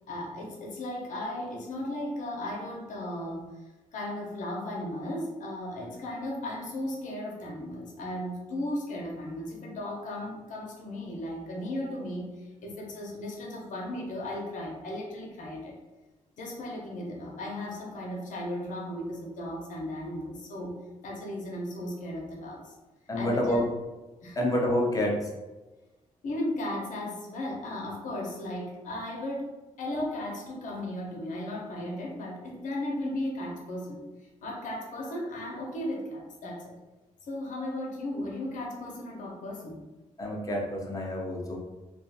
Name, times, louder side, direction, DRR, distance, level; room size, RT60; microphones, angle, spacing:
voice 1, 0.1-3.5 3.9-15.8 16.4-20.8 21.0-22.7 23.1-23.6 24.2-24.4 26.2-34.1 34.4-36.7 37.3-39.8, left 1 dB, 75° left, -1 dB, 0.7 m, -36 dB
voice 2, 23.1-23.6 24.4-25.2 40.2-41.6, left 1 dB, 25° left, -2 dB, 0.6 m, -28 dB
2.4 x 2.3 x 2.6 m, 1.1 s
cardioid pair, 120°, 13 cm